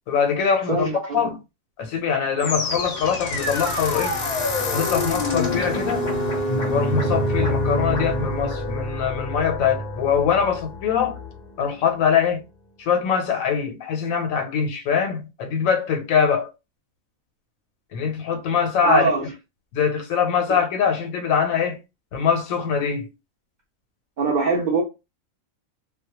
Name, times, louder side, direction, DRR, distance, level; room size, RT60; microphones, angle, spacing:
voice 1, 0.1-1.4 1.8-4.2 4.7-6.1 6.7-11.2 11.6-12.4 12.8-16.5 17.9-19.1 19.7-21.8 22.1-23.1, left 7 dB, 85° left, 1.0 m, -23 dB
voice 2, 0.7-1.3 18.8-19.3 20.5-20.6 24.2-24.8, right 4 dB, 70° right, 0.4 m, -23 dB
sound 1, 2.4-11.5, left 1 dB, 55° left, 0.5 m, -26 dB
2.2 x 2.1 x 2.8 m
omnidirectional pair, 1.4 m